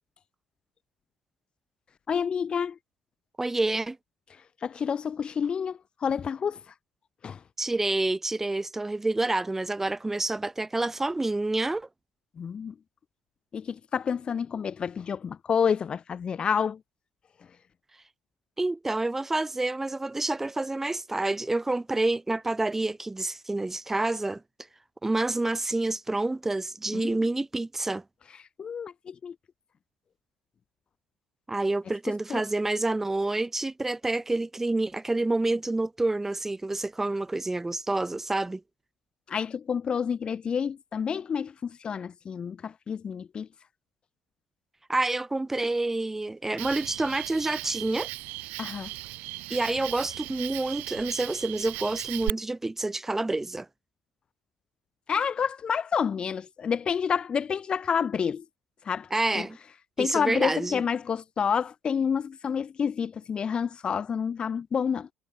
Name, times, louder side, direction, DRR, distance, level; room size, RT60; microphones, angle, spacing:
voice 1, 2.1-2.8 4.6-6.7 7.2-7.4 12.4-12.7 13.5-16.8 26.9-27.2 28.4-29.3 32.3-32.4 39.3-43.5 48.6-48.9 55.1-58.4 58.8-59.5 60.0-65.1, left 7 dB, 35° left, 2.6 m, -29 dB
voice 2, 3.4-4.0 7.6-11.9 18.6-24.4 25.0-28.0 31.5-38.6 44.9-48.1 49.5-53.7 59.1-59.6 60.0-60.8, right 2 dB, 15° right, 5.9 m, -28 dB
Cricket, 46.6-52.3, right 20 dB, 70° right, 2.5 m, -37 dB
supercardioid pair, 80°, 3 cm